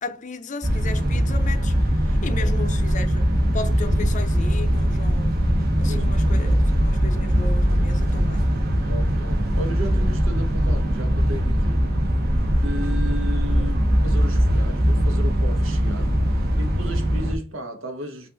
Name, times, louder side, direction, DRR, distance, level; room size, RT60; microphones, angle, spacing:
voice 1, 0.0-3.3 3.5-5.5 5.8-8.6 13.6-13.7, left 4 dB, 40° left, 0.5 m, -35 dB
sound 1, 0.6-17.3, equal, 50° right, 1.0 m, -21 dB
voice 2, 8.9-11.9 12.6-18.3, equal, 85° right, 1.1 m, -35 dB
5.5 x 2.6 x 3.8 m
head